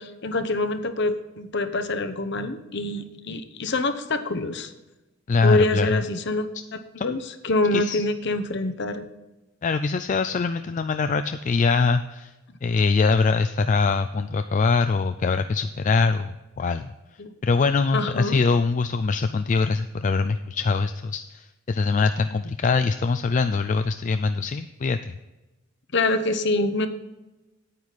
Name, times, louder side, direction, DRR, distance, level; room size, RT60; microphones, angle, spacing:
voice 1, 0.0-4.7 5.4-6.5 6.7-9.0 17.2-17.3 17.9-18.4 25.9-26.9, left 2 dB, 55° left, 9 dB, 0.9 m, -25 dB
voice 2, 5.3-6.0 7.0-7.2 7.7-8.0 9.6-12.3 12.6-16.9 17.4-25.1, left 4 dB, 35° left, 10 dB, 0.3 m, -23 dB
9.5 x 9.1 x 4.1 m, 1.0 s
head